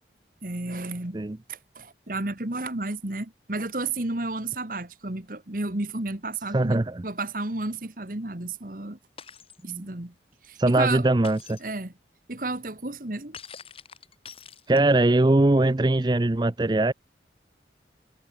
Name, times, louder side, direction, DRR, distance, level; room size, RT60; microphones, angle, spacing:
voice 1, 0.4-1.2 1.5-9.0 9.6-10.1 10.4-11.1 11.6-11.9 12.3-13.4, right 2 dB, 50° right, 1.7 m, -32 dB
voice 2, 6.5-7.0 9.6-9.8 10.6-11.6 14.7-16.9, right 2 dB, 25° right, 0.5 m, -21 dB
Shatter, 9.2-9.6 11.2-11.7 13.3-15.1, left 6 dB, 30° left, 7.2 m, -45 dB
head